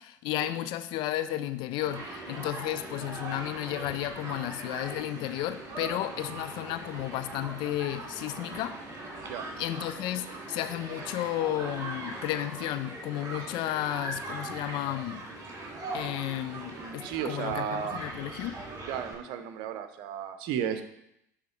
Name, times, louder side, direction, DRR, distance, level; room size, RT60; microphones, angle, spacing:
voice 1, 0.0-8.8 9.6-15.2 15.9-18.6, left 13 dB, 55° left, 12 dB, 0.4 m, -33 dB
Human group actions, 1.8-19.1, right 2 dB, 35° right, 2.6 m, -40 dB
voice 2, 16.8-18.0 18.9-20.8, right 9 dB, 60° right, 9 dB, 0.8 m, -34 dB
10.5 x 3.6 x 4.4 m, 0.82 s
hypercardioid pair, 70°, 9 cm